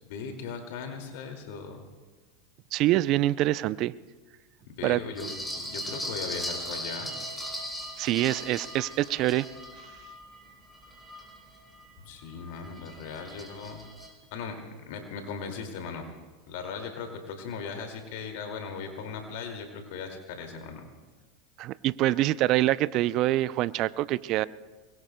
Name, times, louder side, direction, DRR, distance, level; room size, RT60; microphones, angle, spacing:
voice 1, 0.1-1.8 4.7-7.1 12.0-13.8 14.3-14.5 14.9-16.0 16.5-20.9, left 5 dB, 65° left, 4 dB, 2.2 m, -38 dB
voice 2, 2.7-3.9 4.8-5.0 8.0-9.5 21.6-24.5, right 15 dB, 50° right, 18 dB, 0.4 m, -25 dB
sound 1, 5.2-11.9 12.3-14.1, equal, 10° left, 5.7 m, -39 dB
24.5 x 22.0 x 2.2 m, 1.3 s
hypercardioid pair, 90°, 0 cm